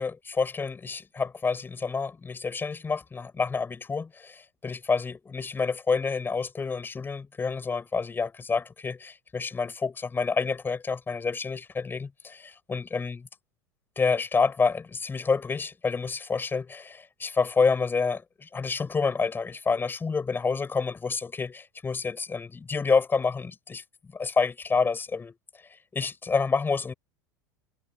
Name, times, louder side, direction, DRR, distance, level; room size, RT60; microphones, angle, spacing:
voice 1, 0.0-13.3 14.0-23.8 24.1-25.4 25.6-26.9, left 4 dB, 20° left, 7.3 m, -28 dB
hypercardioid pair, 90°, 10 cm